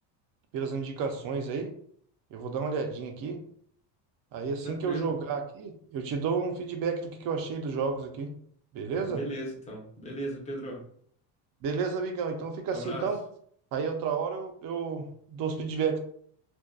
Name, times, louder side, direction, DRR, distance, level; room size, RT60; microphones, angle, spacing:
voice 1, 0.5-1.7 2.3-3.4 4.3-8.3 8.7-9.2 11.6-13.2 13.7-16.0, right 5 dB, 50° right, 5 dB, 0.5 m, -31 dB
voice 2, 4.6-5.1 9.1-10.8 12.7-13.1, right 1 dB, 15° left, -2 dB, 0.6 m, -37 dB
2.6 x 2.2 x 2.2 m, 0.62 s
cardioid pair, 135°, 44 cm